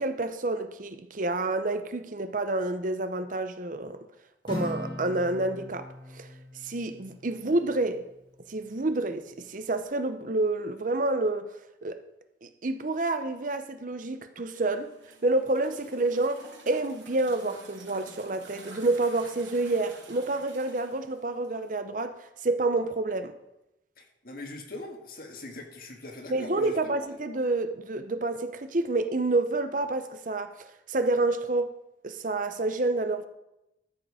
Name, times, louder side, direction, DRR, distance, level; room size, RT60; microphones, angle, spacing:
voice 1, 0.0-4.0 4.4-5.9 6.1-6.3 6.6-8.1 8.5-11.5 11.8-12.0 12.4-14.9 15.2-23.3 26.3-31.7 32.0-33.2, right 2 dB, 45° right, 0.8 m, -28 dB
Acoustic guitar, 4.5-8.1, left 1 dB, 25° left, 1.8 m, -40 dB
sound 1, 14.7-21.8, right 3 dB, 80° right, 3.4 m, -50 dB
voice 2, 24.0-27.0, left 2 dB, 50° left, 1.9 m, -41 dB
13.5 x 7.6 x 5.0 m
head